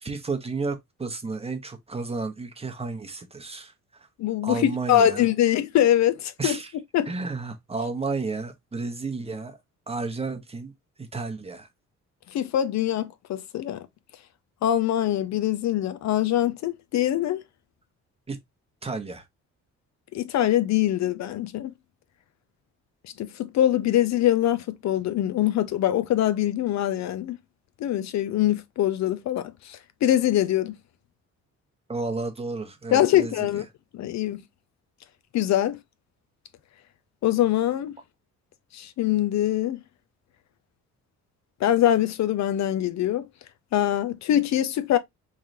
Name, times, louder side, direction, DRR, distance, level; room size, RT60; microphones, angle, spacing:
voice 1, 0.0-4.1 4.4-5.2 6.4-6.7 7.1-9.6 9.9-10.7 11.0-11.7 18.3-18.4 18.8-19.2 31.9-33.6, right 3 dB, 20° right, 0.9 m, -32 dB
voice 2, 4.2-6.6 6.9-7.1 12.3-13.9 14.6-17.4 20.1-21.7 23.2-23.3 23.5-27.4 27.8-30.7 32.9-33.6 33.9-34.4 35.3-35.8 37.2-37.9 38.7-39.8 41.6-43.3 43.7-45.0, left 12 dB, 65° left, 0.5 m, -23 dB
3.6 x 3.2 x 2.6 m
cardioid pair, 90°, 30 cm